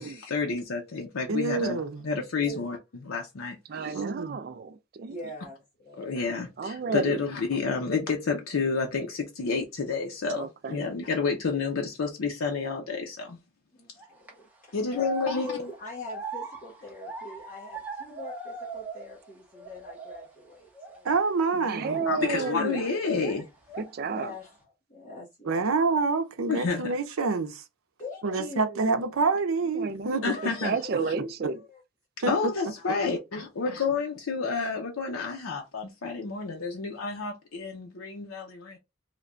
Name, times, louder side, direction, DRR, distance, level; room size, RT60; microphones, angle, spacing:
voice 1, 0.0-2.8 3.1-3.6 6.0-13.4 14.7-15.5 22.1-23.5 26.5-26.9 30.2-30.7 32.3-38.8, left 4 dB, 85° left, 0.6 m, -30 dB
voice 2, 1.3-2.1 3.9-4.4 21.0-22.0 25.5-27.6 28.2-30.3 32.2-32.3, right 4 dB, 90° right, 0.6 m, -27 dB
voice 3, 3.7-5.2 6.6-7.2 10.3-10.8 21.6-23.0 23.8-24.3 29.7-31.6, right 4 dB, 45° right, 0.3 m, -32 dB
voice 4, 5.1-6.2 13.7-21.1 21.4-21.6 24.1-24.6 24.9-25.7 28.0-29.0 30.3-31.8 32.2-32.3, left 2 dB, 40° left, 0.9 m, -43 dB
sound 1, 14.0-14.3 14.9-19.3 19.5-20.3 20.7-21.0 21.8-23.4 23.7-24.5, right 3 dB, 10° right, 0.6 m, -40 dB
3.2 x 2.2 x 3.7 m
head